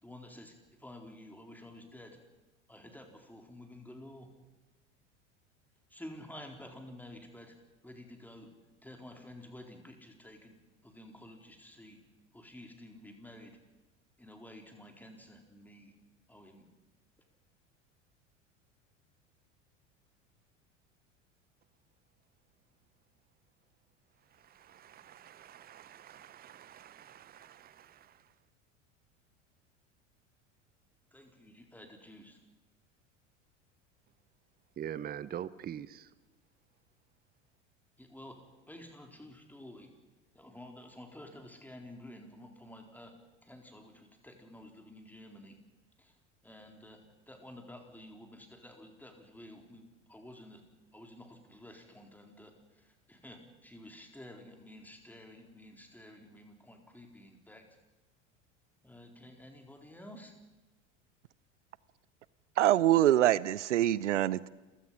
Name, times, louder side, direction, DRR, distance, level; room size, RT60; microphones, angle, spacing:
voice 1, 0.0-2.2 2.7-4.3 5.9-7.5 7.8-8.5 8.8-10.5 10.8-12.0 12.3-13.6 14.2-15.9 16.3-16.6 31.1-32.4 38.0-38.4 38.7-39.9 40.3-43.1 43.4-45.5 46.0-46.2 46.4-47.0 47.3-50.6 50.9-57.7 58.8-60.3, left 1 dB, 5° left, 4.1 m, -51 dB
voice 2, 24.3-28.3 34.8-36.1, right 9 dB, 25° right, 0.9 m, -45 dB
voice 3, 62.6-64.5, right 13 dB, 70° right, 0.8 m, -25 dB
29.5 x 16.5 x 5.8 m
figure-of-eight pair, 75°, 37 cm